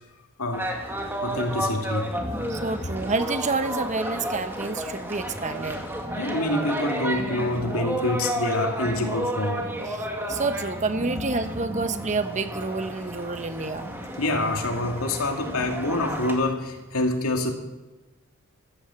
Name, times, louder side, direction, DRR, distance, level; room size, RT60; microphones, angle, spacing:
voice 1, 0.4-0.7 1.2-2.1 6.1-9.7 14.2-17.5, left 2 dB, 80° left, 3 dB, 2.7 m, -26 dB
sound 1, 0.5-16.4, right 1 dB, 10° right, 2.2 m, -32 dB
voice 2, 2.5-5.8 9.9-13.9, right 3 dB, 35° right, 9 dB, 1.1 m, -29 dB
14.5 x 12.5 x 7.2 m, 1.1 s
head